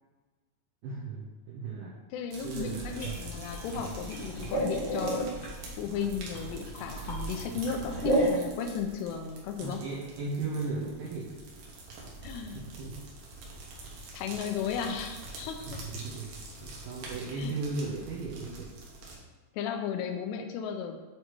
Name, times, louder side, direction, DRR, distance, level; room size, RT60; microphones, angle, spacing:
voice 1, 0.8-1.9 2.4-3.1 9.6-11.4 12.5-13.0 15.9-16.3 16.6-18.7, right 3 dB, 90° right, -5 dB, 1.9 m, -36 dB
voice 2, 2.1-5.3 5.8-9.8 12.2-12.6 14.1-15.8 17.4-17.6 19.5-21.0, left 7 dB, 85° left, 5 dB, 2.6 m, -35 dB
sound 1, 2.3-19.2, right 2 dB, 70° right, 2.5 m, -46 dB
sound 2, 2.7-8.3, right 1 dB, 65° left, 1.5 m, -33 dB
8.2 x 3.0 x 4.6 m, 1.3 s
omnidirectional pair, 5.0 m